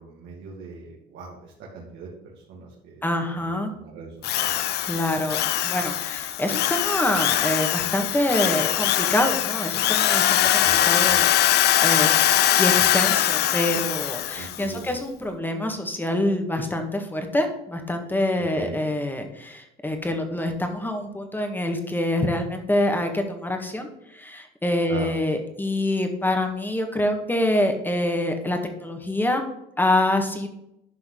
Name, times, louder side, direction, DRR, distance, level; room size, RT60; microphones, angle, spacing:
voice 1, 0.0-3.1 3.3-4.8 10.3-11.3 14.4-14.9 18.5-18.8 24.9-25.2, right 4 dB, 70° right, -4 dB, 2.5 m, -40 dB
voice 2, 3.0-3.7 4.9-11.3 11.6-12.1 12.6-29.4 29.8-30.5, left 1 dB, 10° left, 4 dB, 1.8 m, -26 dB
Drill, 4.2-14.6, left 12 dB, 55° left, 0.6 m, -22 dB
11.5 x 5.6 x 4.0 m, 0.80 s
supercardioid pair, 95°, 20 cm